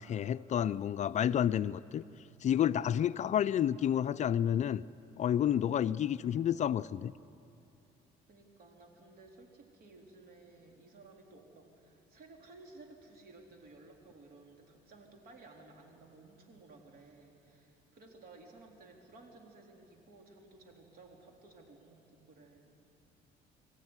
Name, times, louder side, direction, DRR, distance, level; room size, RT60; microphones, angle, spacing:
voice 1, 0.0-2.0 2.4-4.8 5.2-7.1, left 10 dB, 45° left, 15 dB, 0.4 m, -30 dB
voice 2, 8.3-22.8, right 3 dB, 65° right, 2 dB, 3.8 m, -56 dB
24.0 x 15.0 x 9.8 m, 2.6 s
cardioid pair, 110°, 17 cm